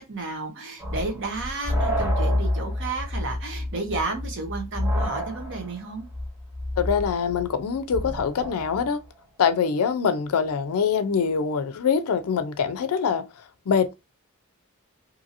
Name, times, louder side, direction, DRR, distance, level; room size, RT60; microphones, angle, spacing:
voice 1, 0.1-6.1, right 3 dB, 55° right, 0.8 m, -32 dB
sound 1, 0.8-8.9, left 1 dB, 10° right, 0.6 m, -28 dB
voice 2, 6.8-9.0 9.4-13.2 13.7-14.0, left 6 dB, 75° left, 0.4 m, -24 dB
2.7 x 2.7 x 2.5 m
head